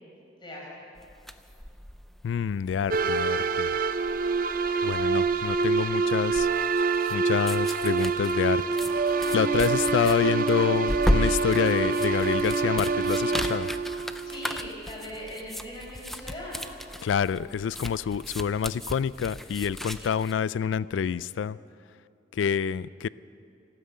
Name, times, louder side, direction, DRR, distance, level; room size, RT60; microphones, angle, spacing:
sound 1, 1.0-20.3, equal, ahead, 0.4 m, -35 dB
voice 1, 2.2-3.7 4.8-6.5 7.1-8.6 9.3-13.7 17.0-21.6 22.3-23.1, left 7 dB, 85° left, 19 dB, 0.3 m, -27 dB
sound 2, 2.9-14.7, right 4 dB, 50° right, 0.5 m, -26 dB
voice 2, 14.2-16.7 20.0-20.1, left 1 dB, 25° left, -4 dB, 4.7 m, -40 dB
14.0 x 13.0 x 8.0 m, 2.5 s
head